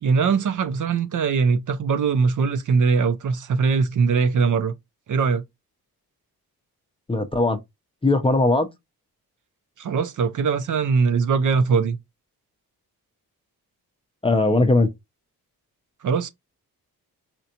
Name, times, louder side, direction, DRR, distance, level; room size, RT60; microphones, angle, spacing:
voice 1, 0.0-4.7 5.1-5.4 9.8-12.0 16.0-16.3, right 5 dB, 50° right, 0.6 m, -21 dB
voice 2, 7.1-7.6 8.0-8.7 14.2-14.9, left 2 dB, 15° left, 0.6 m, -19 dB
4.4 x 2.4 x 2.7 m
cardioid pair, 60°, 38 cm